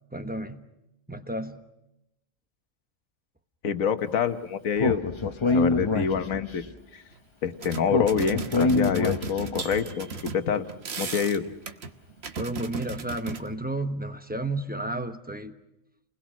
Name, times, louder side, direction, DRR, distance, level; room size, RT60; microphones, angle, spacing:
voice 1, 0.1-0.7 1.1-1.6 12.4-15.5, right 1 dB, 10° right, 7 dB, 0.9 m, -32 dB
voice 2, 3.6-5.0 5.5-6.6 6.9-7.0 7.4-10.7 11.0-11.4, left 7 dB, 80° left, 9 dB, 1.5 m, -26 dB
Speech, 4.8-6.6 7.9-9.6, left 3 dB, 25° left, 0.8 m, -25 dB
sound 1, 7.1-7.2 7.4-13.4, right 5 dB, 55° right, 1.3 m, -36 dB
30.0 x 20.5 x 6.2 m, 0.87 s
omnidirectional pair, 1.4 m